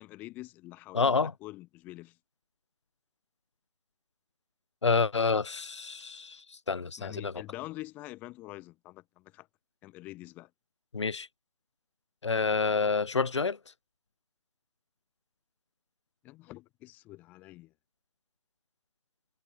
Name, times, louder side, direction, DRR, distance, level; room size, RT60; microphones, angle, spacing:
voice 1, 0.0-2.2 7.0-9.5 9.8-10.5 16.2-17.7, left 18 dB, 10° left, 7.3 m, -45 dB
voice 2, 0.9-1.3 4.8-7.4 10.9-11.3 12.2-13.6, left 4 dB, 45° left, 5.2 m, -28 dB
figure-of-eight pair, 175°, 20 cm